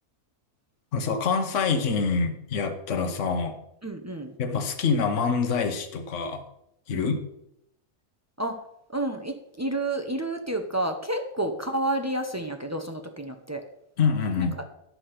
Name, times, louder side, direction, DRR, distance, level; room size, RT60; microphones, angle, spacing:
voice 1, 0.9-3.6 4.4-6.4 6.9-7.2 14.0-14.6, left 5 dB, 55° left, 6 dB, 1.3 m, -26 dB
voice 2, 3.8-4.4 6.9-7.1 8.4-8.6 8.9-13.6 14.4-14.5, right 1 dB, 25° right, 4 dB, 0.3 m, -30 dB
11.0 x 5.0 x 5.9 m, 0.79 s
omnidirectional pair, 1.7 m